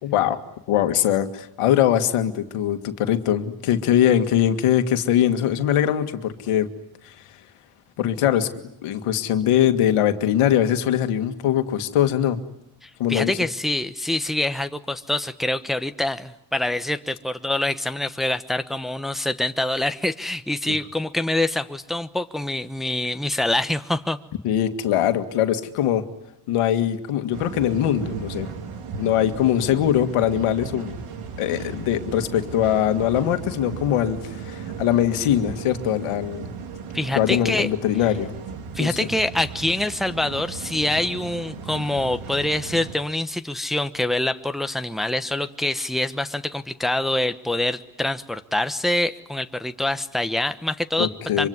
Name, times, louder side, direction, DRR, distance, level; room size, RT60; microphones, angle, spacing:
voice 1, 0.0-0.4 0.7-6.7 7.0-7.1 8.0-8.5 8.8-12.4 13.0-13.3 20.7-20.8 24.4-26.0 26.5-28.5 29.0-31.0 31.4-36.5 37.2-38.3 38.8-39.0 51.0-51.5, left 10 dB, 85° left, 8 dB, 2.1 m, -22 dB
voice 2, 12.8-24.2 36.9-37.7 38.7-51.5, left 1 dB, ahead, 8 dB, 1.1 m, -25 dB
sound 1, 27.3-42.9, right 5 dB, 80° right, 3.4 m, -36 dB
25.0 x 24.5 x 9.6 m, 0.79 s
cardioid pair, 105°, 50 cm